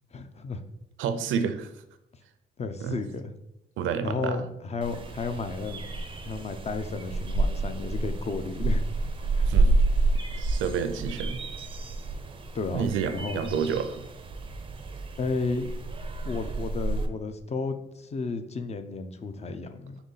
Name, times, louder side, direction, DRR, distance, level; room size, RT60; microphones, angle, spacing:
voice 1, 0.1-0.6 2.6-3.3 4.0-5.9 6.2-8.8 9.3-9.5 12.5-13.5 15.2-15.7 16.3-20.0, left 4 dB, 35° left, 8 dB, 0.5 m, -33 dB
voice 2, 1.0-1.7 2.8-3.0 3.8-4.4 9.5-9.7 10.4-11.4 12.7-14.0, right 7 dB, 80° right, 10 dB, 0.5 m, -29 dB
sound 1, 4.8-17.1, right 2 dB, 25° right, 0.5 m, -29 dB
3.9 x 3.0 x 3.9 m, 0.84 s
cardioid pair, 90°, 20 cm